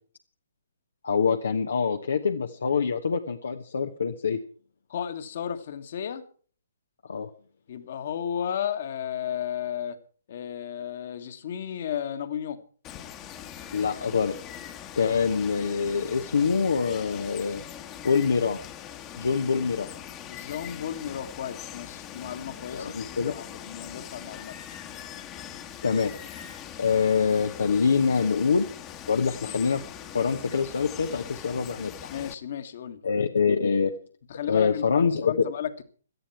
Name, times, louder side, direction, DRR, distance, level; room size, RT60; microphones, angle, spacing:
voice 1, 1.0-4.4 7.1-7.3 13.7-14.4 14.9-17.6 18.0-18.6 19.2-19.9 22.7-23.3 25.8-26.1 26.8-28.7 29.1-29.8 30.1-32.1 33.0-33.9 34.5-35.3, left 5 dB, 60° left, 5 dB, 1.2 m, -25 dB
voice 2, 4.9-6.3 7.7-10.0 10.3-12.6 20.3-22.9 23.2-24.6 32.1-33.0 34.3-35.8, left 9 dB, 45° left, 10 dB, 1.8 m, -33 dB
Water, 12.8-32.3, left 10 dB, 20° left, 1.5 m, -42 dB
17.5 x 13.0 x 4.6 m, 0.43 s
figure-of-eight pair, 130°, 0 cm